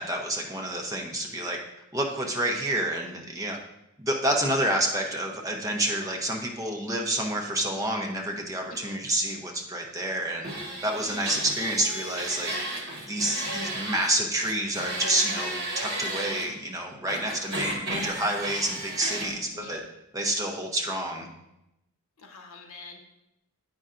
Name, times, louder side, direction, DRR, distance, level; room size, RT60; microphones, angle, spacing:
voice 1, 0.0-1.6 1.9-3.6 4.0-10.5 10.8-19.8 20.1-21.3, right 1 dB, 15° right, 1 dB, 0.7 m, -29 dB
voice 2, 8.7-9.0 19.5-19.8 22.2-23.0, left 3 dB, 70° left, 3 dB, 0.9 m, -45 dB
sound 1, 10.4-14.1 14.4-16.4 17.1-19.3, right 1 dB, 55° right, 1.5 m, -33 dB
8.9 x 5.4 x 2.5 m, 0.87 s
head